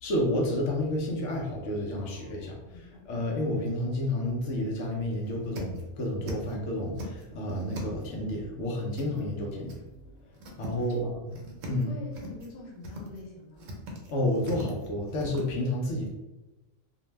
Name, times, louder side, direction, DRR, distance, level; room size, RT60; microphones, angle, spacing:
voice 1, 0.0-9.7 10.6-11.2 11.7-11.9 14.1-16.1, left 1 dB, 75° left, -1 dB, 0.9 m, -30 dB
voice 2, 2.0-3.3 10.7-11.1 11.6-13.7, left 2 dB, 45° left, -3 dB, 0.6 m, -46 dB
sound 1, 3.8-3.9 4.2-4.3 4.7-4.8 5.1-6.5 6.8-8.2 8.9-9.4 9.7-9.8 10.2-11.0 11.3-11.8 12.1-12.5 12.8-13.2 13.6-15.4, equal, 75° right, 1.0 m, -41 dB
2.6 x 2.1 x 3.1 m, 1.0 s
omnidirectional pair, 1.3 m